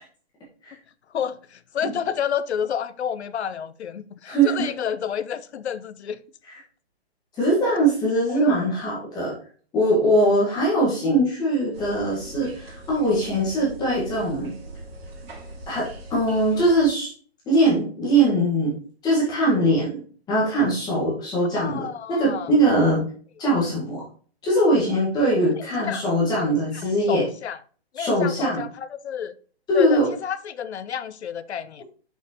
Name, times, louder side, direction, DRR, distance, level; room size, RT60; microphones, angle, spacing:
voice 1, 1.1-6.2 8.3-8.6 21.5-22.5 25.6-26.1 26.8-27.6 27.9-29.3 29.7-31.8, left 8 dB, 80° left, 0.7 m, -30 dB
voice 2, 4.2-4.7 7.4-9.3 9.7-14.5 15.7-17.1 17.4-18.7 19.0-20.0 20.3-23.0 23.4-24.0 24.4-27.2 28.0-28.6 29.7-30.1, right 1 dB, 10° left, 1.7 m, -21 dB
sound 1, 11.7-16.9, right 2 dB, 60° right, 3.3 m, -41 dB
6.4 x 5.3 x 3.0 m
hypercardioid pair, 155°, 32 cm